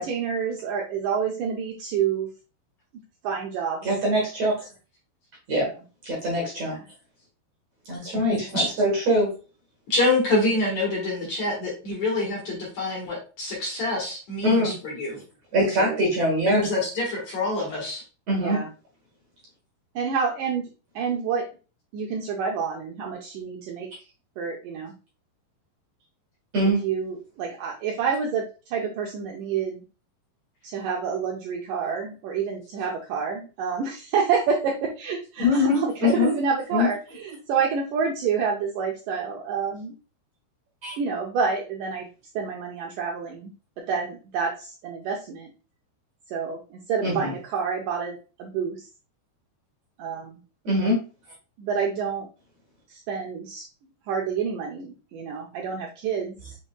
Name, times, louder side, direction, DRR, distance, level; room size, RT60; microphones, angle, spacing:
voice 1, 0.0-2.3 3.2-3.9 5.6-5.7 6.7-6.8 15.8-16.0 18.3-18.7 20.0-20.7 21.0-21.4 21.9-23.9 24.4-24.9 26.8-29.8 30.6-39.9 41.0-42.1 42.4-43.5 43.9-45.5 46.3-48.9 50.0-50.4 51.6-52.3 52.9-53.6 54.1-56.6, right 6 dB, 90° right, 0 dB, 1.8 m, -28 dB
voice 2, 3.8-4.7 5.5-5.7 6.0-6.8 7.9-9.3 14.4-14.7 15.5-16.7 18.3-18.6 26.5-26.8 35.4-36.3 36.7-36.9 40.8-41.0 47.0-47.3 50.6-51.0, left 1 dB, 60° right, -2 dB, 2.0 m, -23 dB
voice 3, 9.9-15.2 16.4-18.0, left 2 dB, 55° left, -3 dB, 2.3 m, -26 dB
6.1 x 3.7 x 2.2 m, 0.34 s
omnidirectional pair, 4.5 m